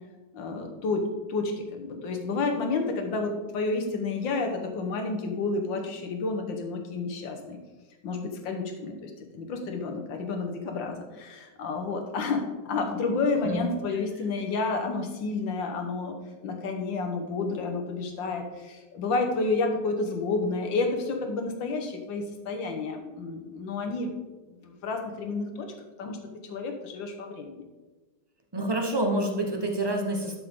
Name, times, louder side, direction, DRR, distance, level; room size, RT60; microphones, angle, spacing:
voice 1, 0.3-7.6 8.0-16.1 16.4-24.1 24.4-25.7 26.0-26.2 26.4-27.6, left 3 dB, 90° left, 4 dB, 1.9 m, -30 dB
voice 2, 28.5-30.4, right 1 dB, 20° right, 3 dB, 0.8 m, -27 dB
12.0 x 6.6 x 3.7 m, 1.2 s
omnidirectional pair, 2.0 m